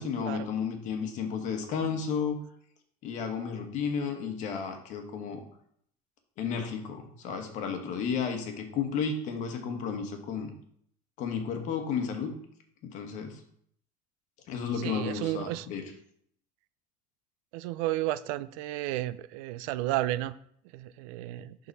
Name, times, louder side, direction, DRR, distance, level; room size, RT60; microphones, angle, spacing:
voice 1, 0.0-2.4 3.0-5.4 6.4-10.5 11.2-12.3 12.8-13.4 14.5-15.8, left 6 dB, 45° left, 4 dB, 1.3 m, -32 dB
voice 2, 14.8-15.7 17.5-20.3 20.7-21.6, right 15 dB, 85° right, 15 dB, 0.4 m, -32 dB
11.0 x 3.9 x 4.1 m, 0.67 s
cardioid pair, 160°, 17 cm